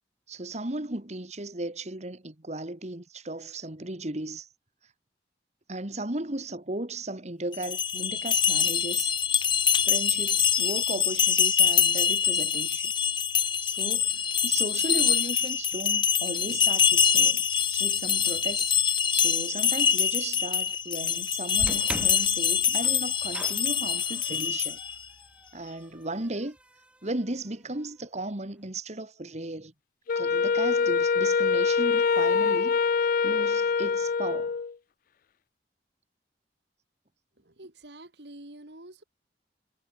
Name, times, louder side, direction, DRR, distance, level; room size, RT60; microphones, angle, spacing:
voice 1, 0.3-4.5 4.8-4.9 5.7-9.2 9.8-12.9 13.6-24.8 25.5-26.6 27.0-29.7 30.2-32.8 33.2-34.6, right 2 dB, 40° right, 2.0 m, -36 dB
sound 1, 7.5-25.0, left 8 dB, 30° left, 0.9 m, -25 dB
sound 2, 21.6-27.8, right 1 dB, 5° right, 7.9 m, -42 dB
Wind instrument woodwind instrument, 30.1-34.7, left 5 dB, 50° left, 0.4 m, -24 dB
voice 2, 37.4-39.0, right 1 dB, 75° right, 2.9 m, -47 dB
head